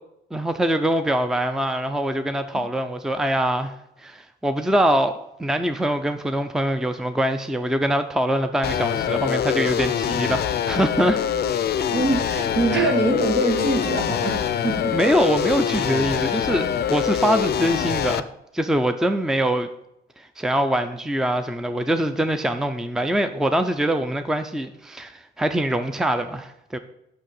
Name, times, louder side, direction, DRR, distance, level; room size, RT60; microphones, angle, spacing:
voice 1, 0.3-11.2 12.7-12.9 14.9-18.3 18.5-19.7 20.2-26.8, right 1 dB, 5° right, 0.5 m, -23 dB
sound 1, 8.6-18.2, left 9 dB, 55° left, 0.5 m, -24 dB
voice 2, 11.9-14.9, right 2 dB, 65° right, 1.9 m, -23 dB
6.4 x 5.7 x 7.0 m
cardioid pair, 90°, 20 cm